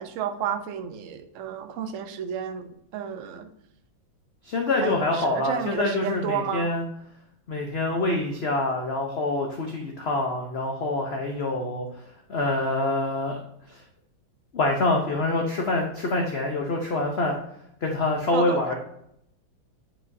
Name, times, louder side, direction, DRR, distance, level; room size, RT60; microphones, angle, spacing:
voice 1, 0.0-3.5 4.7-6.7 18.3-18.6, right 8 dB, 70° right, 7 dB, 0.7 m, -31 dB
voice 2, 4.4-6.8 7.5-13.4 13.7-13.8 14.5-17.4 17.8-18.7, left 2 dB, 55° left, 1 dB, 0.7 m, -26 dB
8.9 x 5.0 x 2.7 m, 0.76 s
omnidirectional pair, 2.1 m